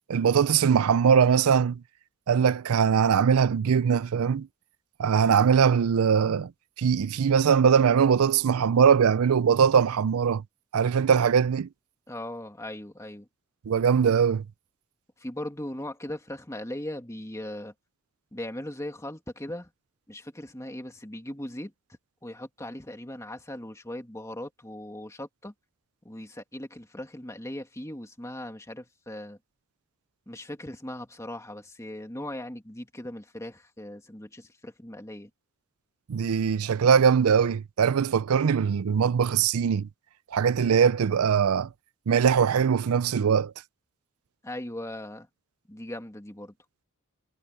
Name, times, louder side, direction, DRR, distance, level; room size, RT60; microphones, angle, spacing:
voice 1, 0.1-1.8 2.3-4.5 5.0-6.5 6.8-10.4 10.7-11.7 13.7-14.4 36.1-39.9 40.3-41.7 42.1-43.5, right 7 dB, 85° right, 0.4 m, -21 dB
voice 2, 12.1-13.3 15.2-17.7 18.3-19.7 20.1-21.7 22.2-25.5 26.0-29.4 30.3-35.3 44.4-45.3 45.7-46.5, left 1 dB, 15° left, 2.1 m, -39 dB
head